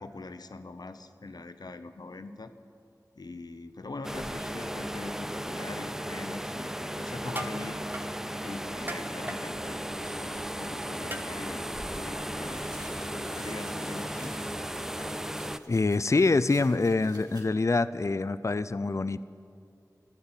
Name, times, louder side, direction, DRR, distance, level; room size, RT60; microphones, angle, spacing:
voice 1, 0.0-2.5 3.1-7.9 8.4-11.6 11.9-14.3, left 3 dB, 85° left, 9 dB, 0.8 m, -42 dB
sound 1, 4.0-15.6, equal, 5° right, 0.5 m, -35 dB
sound 2, 7.3-7.6 7.9-8.1 8.9-9.4 11.1-11.2 12.2-12.3, right 1 dB, 30° right, 1.1 m, -37 dB
sound 3, 12.4-17.5, right 1 dB, 80° right, 2.2 m, -53 dB
voice 2, 15.7-19.2, left 3 dB, 50° left, 13 dB, 0.4 m, -25 dB
14.0 x 11.5 x 9.0 m, 2.5 s
wide cardioid pair, 55°, 7 cm